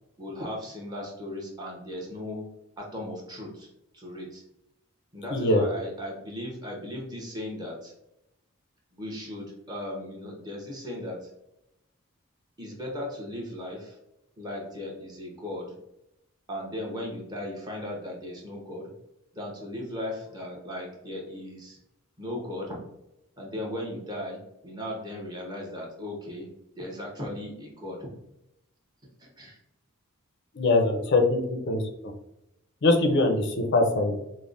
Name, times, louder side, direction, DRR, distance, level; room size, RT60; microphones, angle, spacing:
voice 1, 0.2-2.4 2.8-3.7 3.9-4.4 5.1-7.9 8.9-11.3 12.6-14.0 14.4-15.7 16.5-18.9 19.3-21.8 22.2-22.8 23.4-26.5 26.8-28.1 29.2-29.6, left 1 dB, 20° right, -3 dB, 0.8 m, -37 dB
voice 2, 5.3-5.6 30.5-31.8 32.8-34.2, left 2 dB, 50° left, 4 dB, 0.5 m, -22 dB
5.2 x 2.1 x 2.5 m, 0.86 s
head